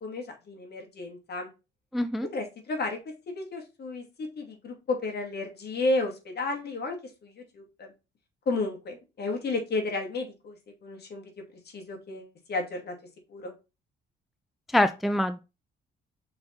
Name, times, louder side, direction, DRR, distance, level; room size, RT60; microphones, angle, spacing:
voice 1, 0.0-1.5 2.3-3.0 3.3-7.0 7.2-7.9 8.5-10.6 10.8-11.3 11.7-12.9 13.3-13.5, left 2 dB, 55° left, 2.2 m, -32 dB
voice 2, 1.9-2.3 14.7-15.4, left 1 dB, ahead, 0.4 m, -25 dB
5.6 x 4.3 x 3.9 m
cardioid pair, 90°, 20 cm